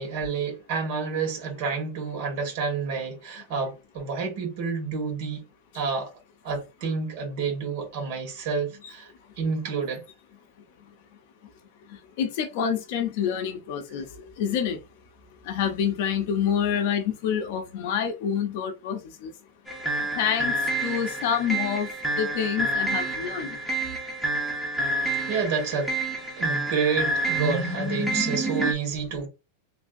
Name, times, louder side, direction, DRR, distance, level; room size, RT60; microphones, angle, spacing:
voice 1, 0.0-5.4 5.7-6.1 6.4-9.1 9.4-10.0 25.3-25.9 26.4-29.3, right 5 dB, 50° right, 1.8 m, -29 dB
voice 2, 12.2-14.1 14.4-14.8 15.5-19.3 20.2-20.5 20.8-21.9 22.2-23.6, left 8 dB, 50° left, 0.6 m, -27 dB
sound 1, 19.7-28.7, right 2 dB, 5° right, 0.7 m, -28 dB
3.2 x 2.7 x 2.6 m
supercardioid pair, 170°, 0 cm